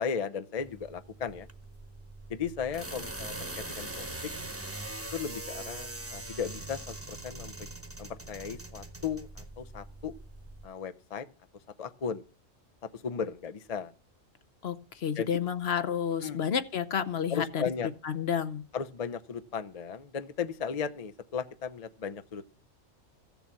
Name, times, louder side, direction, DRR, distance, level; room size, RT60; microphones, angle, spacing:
voice 1, 0.0-1.5 2.3-4.3 5.1-7.5 8.0-10.1 10.6-11.3 11.8-12.2 12.9-13.9 15.2-15.3 16.2-16.4 17.3-17.9 18.7-22.4, left 6 dB, 40° left, 10 dB, 0.5 m, -36 dB
sound 1, 0.6-10.7, right 2 dB, 10° right, 1.1 m, -42 dB
voice 2, 14.6-17.6 18.0-18.6, left 8 dB, 55° left, 12 dB, 1.0 m, -30 dB
15.0 x 7.1 x 7.4 m, 0.39 s
omnidirectional pair, 1.4 m